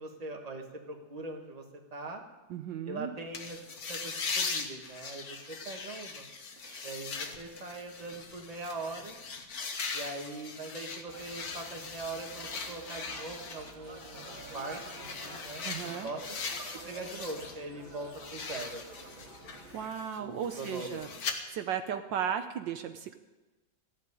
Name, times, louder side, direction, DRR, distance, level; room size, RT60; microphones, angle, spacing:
voice 1, 0.0-1.6 1.9-2.2 2.8-3.6 3.9-6.2 6.8-9.2 9.9-16.4 16.8-19.3 20.2-21.0, right 2 dB, 20° right, 2 dB, 1.5 m, -42 dB
voice 2, 2.5-3.1 6.6-6.9 15.6-16.1 19.7-21.1 21.5-23.2, right 8 dB, 75° right, 8 dB, 1.4 m, -35 dB
sound 1, 3.3-17.6 17.9-21.3, left 4 dB, 55° left, 1.7 m, -40 dB
sound 2, 11.1-19.9, right 4 dB, 90° right, 2.7 m, -50 dB
15.0 x 7.6 x 9.8 m, 1.1 s
omnidirectional pair, 2.1 m